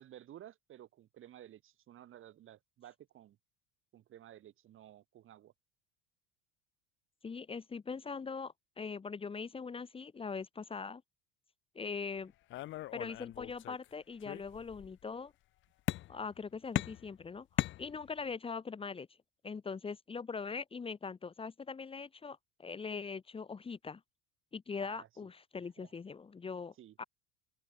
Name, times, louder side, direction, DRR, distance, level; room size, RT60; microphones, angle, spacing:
voice 1, 0.0-3.4 3.9-5.5 24.8-25.1 25.6-25.9 26.8-27.0, right 12 dB, 35° right, 6.7 m, -54 dB
voice 2, 7.2-11.0 11.7-12.3 12.9-15.3 16.1-19.1 19.4-24.0 24.5-27.0, left 5 dB, 15° left, 3.0 m, -42 dB
sound 1, 12.5-13.9 14.2-14.9 15.9-16.4 16.7-18.3, left 16 dB, 35° left, 0.6 m, -38 dB
open air
cardioid pair, 165°, 35 cm